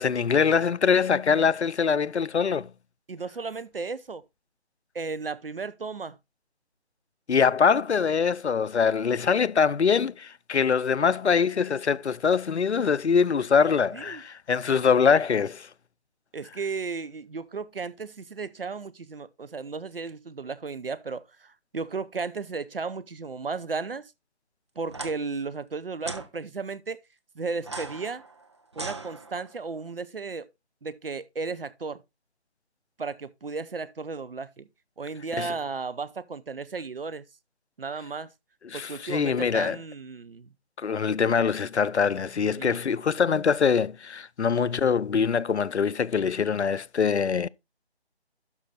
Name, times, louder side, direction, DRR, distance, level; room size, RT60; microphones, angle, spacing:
voice 1, 0.0-2.7 7.3-15.7 35.4-35.5 38.7-39.8 40.8-47.5, left 6 dB, 90° left, 0.6 m, -23 dB
voice 2, 3.1-4.2 4.9-6.2 11.1-11.2 13.9-14.2 16.3-24.0 24.8-27.0 27.3-28.2 28.8-30.5 30.8-32.0 33.0-34.7 35.0-37.2 37.8-38.3 38.7-40.5 42.4-42.8, right 4 dB, 55° right, 0.9 m, -34 dB
sound 1, 24.9-25.1 26.0-26.3 27.6-29.6, right 3 dB, 25° right, 0.8 m, -38 dB
12.0 x 5.6 x 3.8 m
figure-of-eight pair, 165°, 33 cm